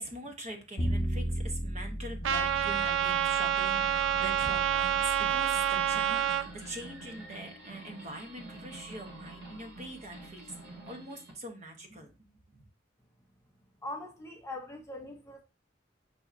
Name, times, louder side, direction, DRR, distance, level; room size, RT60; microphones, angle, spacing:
voice 1, 0.0-12.6, right 1 dB, 35° right, 0.8 m, -43 dB
Bowed string instrument, 0.8-7.0, equal, 35° left, 0.8 m, -37 dB
Trumpet, 2.2-6.4, right 10 dB, 85° right, 0.4 m, -28 dB
sound 1, 3.0-11.3, right 1 dB, 70° right, 1.2 m, -47 dB
voice 2, 13.8-15.4, left 2 dB, 15° left, 0.5 m, -41 dB
5.4 x 2.8 x 2.4 m
head